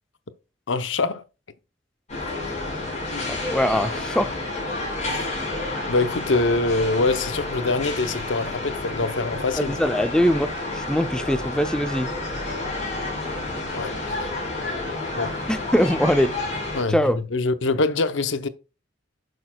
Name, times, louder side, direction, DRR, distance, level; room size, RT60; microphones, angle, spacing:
voice 1, 0.7-1.2 5.0-5.2 5.9-9.8 13.7-14.2 15.1-15.4 16.7-18.5, left 3 dB, 80° left, 0.7 m, -24 dB
sound 1, 2.1-16.8, left 2 dB, 40° left, 4.8 m, -30 dB
voice 2, 3.3-4.3 9.6-12.1 15.5-16.4 16.9-17.2, equal, 5° left, 0.4 m, -22 dB
10.0 x 6.5 x 2.3 m
head